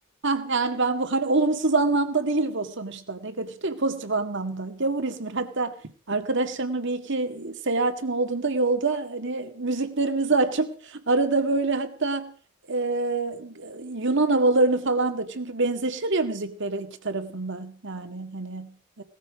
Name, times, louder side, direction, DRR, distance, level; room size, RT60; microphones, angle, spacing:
voice 1, 0.2-5.8 6.1-12.4 12.7-19.0, right 3 dB, 60° right, 8 dB, 1.9 m, -26 dB
18.0 x 14.0 x 5.1 m, 0.43 s
head